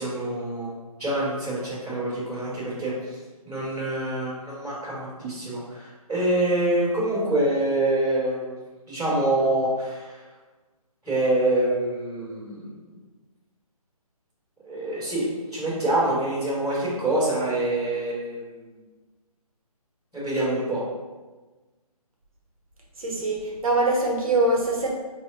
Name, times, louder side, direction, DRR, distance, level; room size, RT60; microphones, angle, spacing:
voice 1, 0.0-3.2 3.4-8.5 8.9-10.2 11.0-12.8 14.6-18.7 20.1-20.8, right 1 dB, ahead, -22 dB, 0.4 m, -26 dB
voice 2, 23.0-24.9, right 2 dB, 60° right, -2 dB, 1.2 m, -23 dB
4.7 x 2.9 x 2.9 m, 1.2 s
hypercardioid pair, 170°, 20 cm